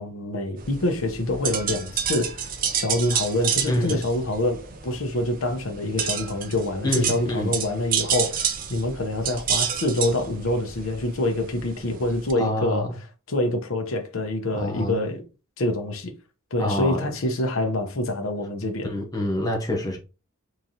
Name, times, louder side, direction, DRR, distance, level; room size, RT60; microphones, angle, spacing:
voice 1, 0.0-2.5 2.7-12.9 13.3-15.2 15.6-16.1 16.5-18.9, left 1 dB, 80° left, 0.8 m, -26 dB
sound 1, 0.6-12.3, right 7 dB, 40° right, 0.5 m, -29 dB
voice 2, 3.7-4.0 6.8-7.5 12.4-13.0 14.5-15.1 16.6-17.1 18.8-20.0, left 1 dB, 20° left, 0.7 m, -26 dB
3.7 x 3.1 x 2.7 m
head